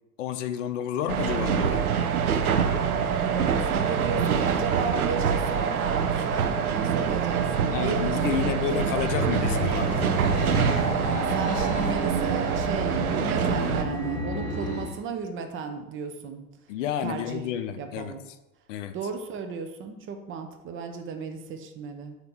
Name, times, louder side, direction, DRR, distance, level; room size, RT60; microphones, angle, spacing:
voice 1, 0.2-1.9 7.7-10.1 16.7-18.2 18.7-18.9, left 10 dB, 60° left, 10 dB, 0.6 m, -30 dB
sound 1, 1.1-13.8, right 7 dB, 80° right, 0.7 m, -25 dB
voice 2, 3.2-8.5 11.0-16.4 17.0-17.5 17.8-18.2 18.9-22.2, right 5 dB, 30° right, 6 dB, 0.7 m, -34 dB
sound 2, 8.8-15.0, equal, 35° left, 1.7 m, -31 dB
7.5 x 2.9 x 5.5 m, 0.98 s
figure-of-eight pair, 85°, 43 cm